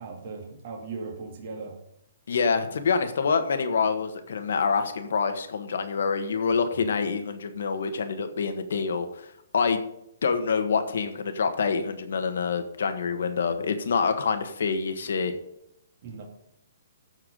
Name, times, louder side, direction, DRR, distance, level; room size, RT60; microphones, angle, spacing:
voice 1, 0.0-1.8 16.0-16.2, right 4 dB, 40° right, -1 dB, 2.3 m, -38 dB
voice 2, 2.3-9.3 9.5-9.8 10.2-15.3, left 5 dB, 75° left, 8 dB, 1.5 m, -26 dB
14.5 x 4.8 x 5.3 m, 0.80 s
hypercardioid pair, 160°, 0 cm